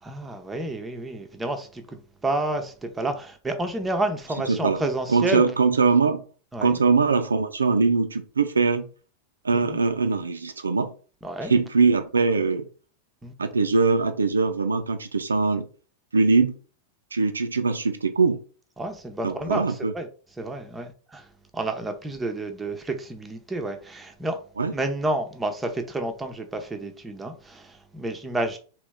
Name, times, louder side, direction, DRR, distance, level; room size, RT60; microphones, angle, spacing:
voice 1, 0.0-5.4 6.5-6.7 9.5-9.8 11.2-11.5 13.2-13.3 18.8-20.1 20.4-21.3 21.5-24.4 24.7-28.6, right 2 dB, 10° right, 0.6 m, -30 dB
voice 2, 4.5-4.8 5.1-6.2 6.6-8.9 9.4-10.9 11.4-12.7 13.4-15.7 16.1-16.6 17.1-18.4 19.2-19.9 24.6-24.7, right 4 dB, 75° right, 0.3 m, -22 dB
3.0 x 3.0 x 3.4 m
figure-of-eight pair, 90°, 0 cm